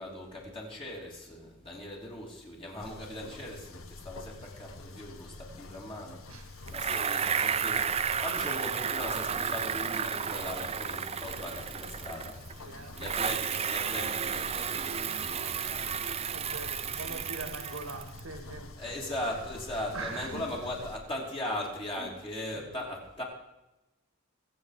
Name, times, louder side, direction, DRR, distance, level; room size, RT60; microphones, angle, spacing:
voice 1, 0.0-6.2 6.7-16.2 16.8-17.5 18.8-23.2, left 1 dB, 25° left, -2 dB, 3.1 m, -39 dB
sound 1, 2.8-21.0, left 2 dB, 80° left, 1.2 m, -47 dB
Bicycle, 6.7-12.5 13.0-18.2, right 7 dB, 30° right, 0.5 m, -32 dB
voice 2, 12.6-13.0 16.3-18.9 19.9-20.5 21.9-22.1 22.5-22.8, right 3 dB, 75° right, 6 dB, 2.1 m, -42 dB
22.0 x 7.8 x 5.0 m, 0.96 s
head